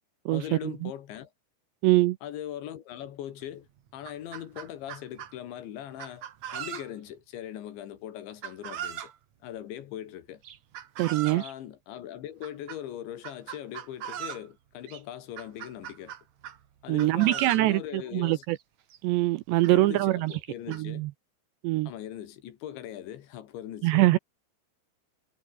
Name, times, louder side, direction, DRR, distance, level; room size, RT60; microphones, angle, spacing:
voice 1, 0.3-1.3 2.2-3.7 3.9-6.2 6.5-9.1 9.4-10.4 11.3-16.1 16.8-18.4 19.7-21.1 21.9-24.2, left 11 dB, 70° left, 4.2 m, -40 dB
voice 2, 1.8-2.2 11.0-11.4 16.9-17.8 18.1-18.6 19.0-20.3 20.7-21.1 21.6-21.9 23.8-24.2, right 18 dB, 85° right, 2.6 m, -23 dB
Chicken rooster, 3.4-3.5 3.9-5.3 6.0-7.1 8.4-9.1 10.4-11.5 12.4-12.8 13.2-14.5 14.9-15.0 15.4-16.6 17.0-17.7 18.6-18.7 18.9-19.0 19.6-19.7 20.3-20.8, right 10 dB, 60° right, 2.0 m, -39 dB
omnidirectional pair, 5.6 m